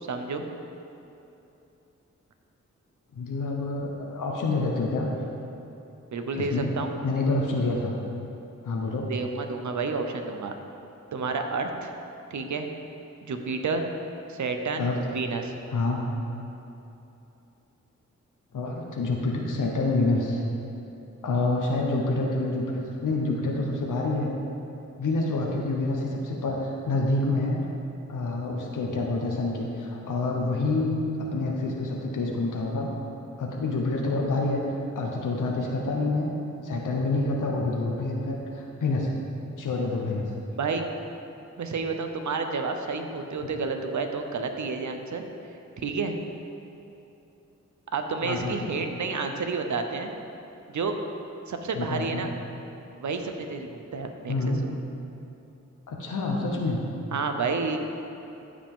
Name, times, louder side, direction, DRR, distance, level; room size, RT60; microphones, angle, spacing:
voice 1, 0.1-0.5 6.1-6.9 9.1-10.6 11.1-11.9 12.3-12.7 13.2-13.8 14.3-15.6 40.5-40.9 41.6-45.2 45.8-46.2 47.9-50.1 50.7-51.0 51.4-52.3 53.0-54.7 57.1-57.8, right 4 dB, 70° right, 5 dB, 0.8 m, -30 dB
voice 2, 3.1-5.1 6.3-6.7 7.0-7.9 8.6-9.1 14.8-15.0 15.7-16.0 18.5-20.4 21.2-24.4 25.0-27.6 28.1-32.9 33.4-34.6 34.9-36.3 36.6-39.1 39.6-40.3 43.4-43.5 48.2-48.7 51.7-52.3 54.3-54.6 55.9-56.8, left 2 dB, 85° left, -1 dB, 1.0 m, -27 dB
14.0 x 5.1 x 3.7 m, 2.9 s
cardioid pair, 55°, 31 cm